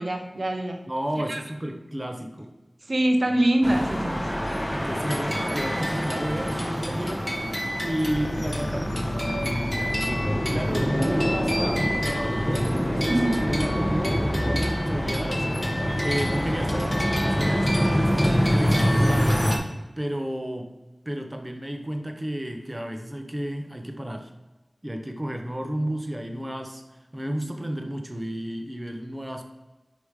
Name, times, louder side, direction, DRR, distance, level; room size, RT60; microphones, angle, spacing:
voice 1, 0.0-0.8 1.3-1.4 2.9-4.2 13.1-13.5, right 1 dB, 60° right, 5 dB, 0.6 m, -24 dB
voice 2, 0.9-2.5 4.7-7.3 7.8-15.7 16.0-19.4 20.0-20.7 21.1-24.3 24.8-26.8 27.1-29.4, right 1 dB, 20° right, 4 dB, 0.9 m, -32 dB
sound 1, 3.6-19.6, equal, 15° left, 1.2 m, -25 dB
sound 2, 8.1-19.3, left 2 dB, 65° left, 0.4 m, -36 dB
5.1 x 5.0 x 4.8 m, 1.1 s
wide cardioid pair, 50°, 0 cm